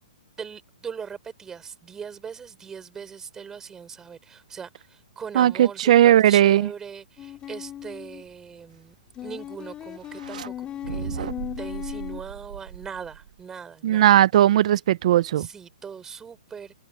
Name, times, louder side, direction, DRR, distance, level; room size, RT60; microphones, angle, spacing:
voice 1, 0.4-9.0 9.2-11.3 11.6-14.2 15.4-16.7, right 6 dB, 10° right, 4.7 m, -40 dB
voice 2, 5.4-6.7 13.8-15.5, right 12 dB, 50° right, 0.5 m, -17 dB
sound 1, 7.2-8.2 9.1-12.2, left 11 dB, 20° left, 3.0 m, -37 dB
sound 2, 10.0-10.5 10.8-13.4, right 9 dB, 70° right, 2.2 m, -36 dB
open air
hypercardioid pair, 155°, 4 cm